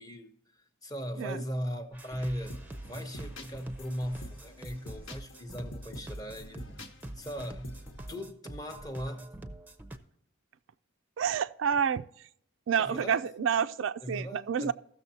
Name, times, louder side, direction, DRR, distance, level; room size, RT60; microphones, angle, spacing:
voice 1, 0.0-2.6 2.8-6.7 7.1-7.8 8.1-9.3 12.8-13.3 14.0-14.7, equal, 20° left, 0.8 m, -38 dB
sound 1, 1.9-10.0, right 1 dB, 10° right, 0.6 m, -45 dB
sound 2, 2.4-8.2, left 1 dB, 70° left, 1.2 m, -46 dB
voice 2, 11.2-12.0 12.7-14.7, right 7 dB, 65° right, 0.3 m, -29 dB
15.5 x 6.7 x 2.8 m
head